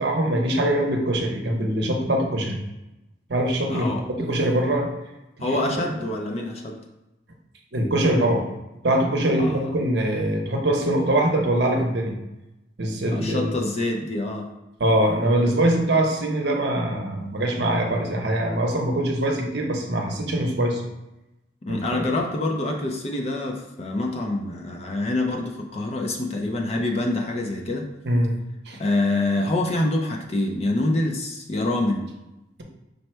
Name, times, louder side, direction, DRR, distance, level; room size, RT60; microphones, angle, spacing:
voice 1, 0.0-2.6 3.3-3.9 4.2-4.9 5.5-5.6 7.7-8.4 8.8-12.1 12.8-13.5 14.8-20.8 21.7-22.1 28.0-28.4 28.7-28.8, right 1 dB, 65° right, 1 dB, 0.8 m, -23 dB
voice 2, 3.7-4.0 5.4-6.8 9.4-9.7 13.1-14.5 21.6-27.9 28.8-32.1, left 2 dB, 35° left, 1 dB, 0.5 m, -26 dB
5.3 x 2.2 x 4.3 m, 0.96 s
head